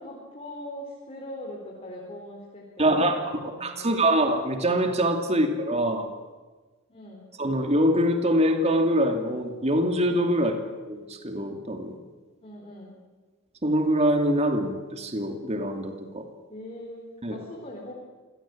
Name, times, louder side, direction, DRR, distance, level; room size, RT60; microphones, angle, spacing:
voice 1, 0.0-4.0 5.3-5.4 6.9-7.3 10.3-10.6 12.4-13.0 16.5-17.9, left 1 dB, 30° left, -2 dB, 4.5 m, -41 dB
voice 2, 2.8-3.1 3.6-6.1 7.4-10.5 10.9-12.0 13.6-16.2 17.2-17.4, right 1 dB, 30° right, 5 dB, 2.5 m, -24 dB
27.5 x 17.5 x 8.9 m, 1.3 s
head